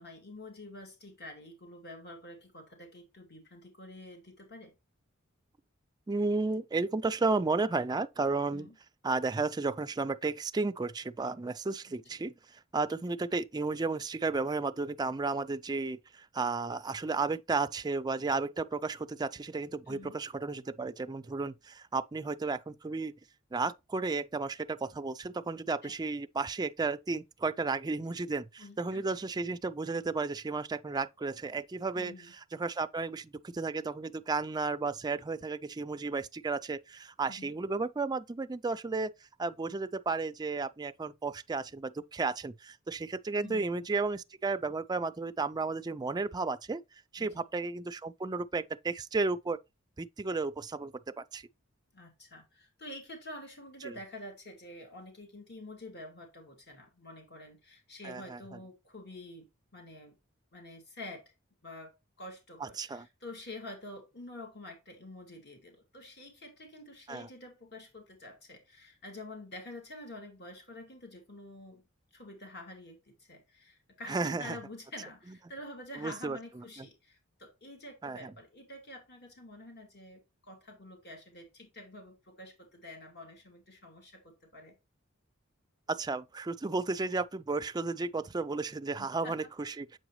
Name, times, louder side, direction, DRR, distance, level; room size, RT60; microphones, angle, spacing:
voice 1, 0.0-4.7 8.5-8.8 19.9-20.2 25.8-25.9 28.6-29.0 31.9-32.3 37.3-37.5 43.4-43.9 47.2-47.4 51.9-59.5 59.7-60.2 60.5-61.3 61.6-71.8 72.1-84.8 89.0-89.5, left 1 dB, 55° left, 2.6 m, -48 dB
voice 2, 6.1-8.7 9.0-12.3 12.7-23.1 23.5-32.1 32.5-39.1 39.4-46.8 47.1-49.6 50.0-51.5 53.8-53.9 58.0-58.4 62.6-63.1 67.1-67.3 74.1-74.6 76.0-76.9 78.0-78.3 85.9-90.0, right 3 dB, 20° right, 0.4 m, -33 dB
7.7 x 4.8 x 3.1 m
head